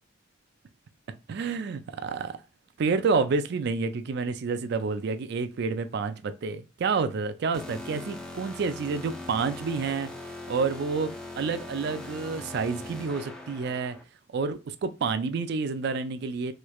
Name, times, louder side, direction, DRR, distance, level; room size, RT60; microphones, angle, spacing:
voice 1, 1.3-2.4 2.8-10.1 10.5-14.0 14.3-16.5, right 4 dB, 60° right, 0.4 m, -29 dB
sound 1, 7.5-14.0, left 2 dB, 5° left, 0.5 m, -41 dB
3.1 x 3.1 x 2.3 m
head